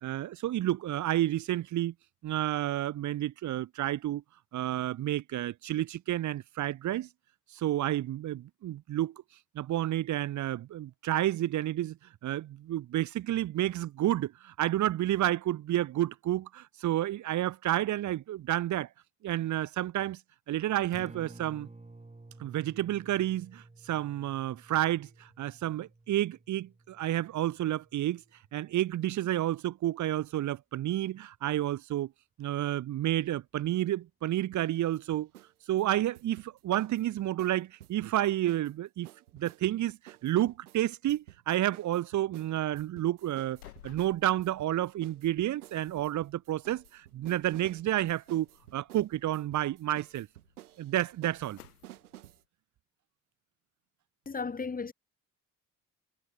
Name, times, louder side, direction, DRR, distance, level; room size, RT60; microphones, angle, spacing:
voice 1, 0.0-1.9 2.2-4.2 4.5-7.1 7.5-9.1 9.5-12.0 12.2-18.9 19.2-20.2 20.5-21.7 22.4-28.2 28.5-32.1 32.4-35.3 35.7-39.1 39.3-43.6 43.8-48.5 48.7-50.3 50.8-51.6, right 13 dB, 40° right, 0.8 m, -30 dB
Acoustic guitar, 20.9-29.0, right 2 dB, 15° right, 3.9 m, -53 dB
sound 1, 34.5-35.5 35.8-38.7 39.0-52.4, right 14 dB, 75° right, 2.0 m, -53 dB
sound 2, 42.5-52.5, left 14 dB, 75° left, 3.8 m, -59 dB
voice 2, 54.3-54.9, left 5 dB, 20° left, 1.2 m, -34 dB
figure-of-eight pair, 45°, 45 cm